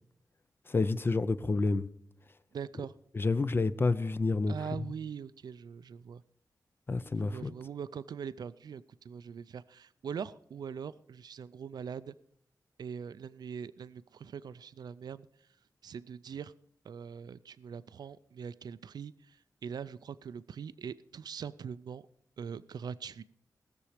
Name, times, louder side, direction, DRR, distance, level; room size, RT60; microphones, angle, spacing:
voice 1, 0.7-1.9 3.1-4.5 6.9-7.5, left 3 dB, 35° left, 0.5 m, -29 dB
voice 2, 2.5-2.9 4.5-6.2 7.2-12.1 12.8-15.3 15.8-16.5 16.8-22.1 22.4-23.2, right 7 dB, 85° right, 0.4 m, -42 dB
18.5 x 6.9 x 4.9 m
wide cardioid pair, 130°, 7 cm